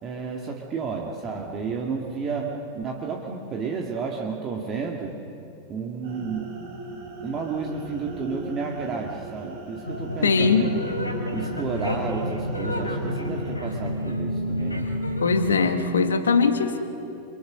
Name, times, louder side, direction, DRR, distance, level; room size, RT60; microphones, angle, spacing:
voice 1, 0.0-5.1 5.7-6.5 7.2-10.7 11.3-14.9, right 5 dB, 30° right, 1 dB, 2.2 m, -31 dB
sound 1, 6.0-13.5, right 2 dB, 60° right, 7.5 m, -39 dB
sound 2, 9.9-15.5, left 1 dB, 85° left, 3.1 m, -29 dB
voice 2, 10.2-10.7 15.2-16.8, left 4 dB, 70° left, 8 dB, 1.8 m, -21 dB
29.0 x 24.0 x 6.6 m, 2.8 s
figure-of-eight pair, 90°, 0 cm